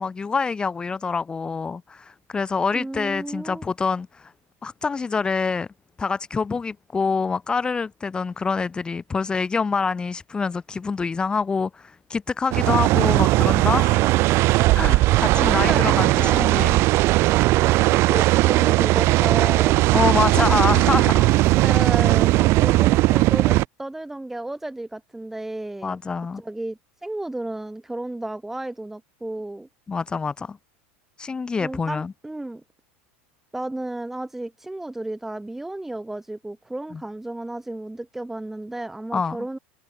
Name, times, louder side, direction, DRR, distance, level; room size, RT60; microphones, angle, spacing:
voice 1, 0.0-4.3 4.6-5.7 6.0-14.1 14.7-16.8 19.9-21.5 25.8-26.4 29.9-30.6 31.2-32.1 36.9-37.0 39.1-39.4, left 5 dB, 15° left, 1.3 m, -26 dB
voice 2, 2.7-3.7 15.4-16.6 17.9-19.9 21.6-26.0 26.4-29.7 31.6-32.6 33.5-39.6, right 2 dB, 5° right, 2.3 m, -33 dB
sound 1, 12.5-23.6, right 19 dB, 45° right, 0.9 m, -18 dB
supercardioid pair, 140°, 6 cm